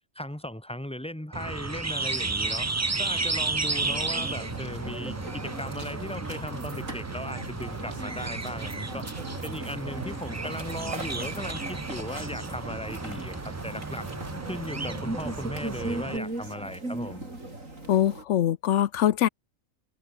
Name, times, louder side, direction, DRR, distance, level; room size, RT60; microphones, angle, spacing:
voice 1, 0.2-2.7 3.0-9.1 9.4-14.1 14.5-17.2, equal, 5° left, 1.9 m, -37 dB
sound 1, 1.3-16.2, right 3 dB, 25° right, 0.4 m, -33 dB
sound 2, 3.7-18.2, right 2 dB, 80° right, 6.8 m, -38 dB
voice 2, 17.9-19.3, left 11 dB, 70° left, 1.0 m, -23 dB
omnidirectional pair, 1.4 m